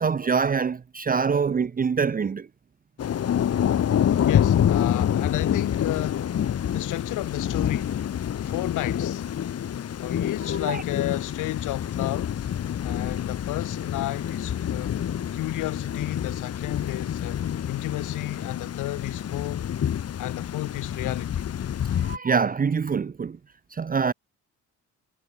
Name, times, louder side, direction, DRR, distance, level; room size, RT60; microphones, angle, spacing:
voice 1, 0.0-2.5 10.5-10.8 21.9-23.4 23.7-24.1, right 5 dB, 30° right, 0.8 m, -25 dB
Thunder / Rain, 3.0-22.2, left 9 dB, 55° left, 1.6 m, -27 dB
voice 2, 4.2-6.3 6.7-8.0 8.4-9.2 10.0-12.4 12.8-15.0 15.3-17.4 17.7-19.7 20.2-21.4, left 17 dB, 85° left, 0.9 m, -32 dB
cardioid pair, 90°, 30 cm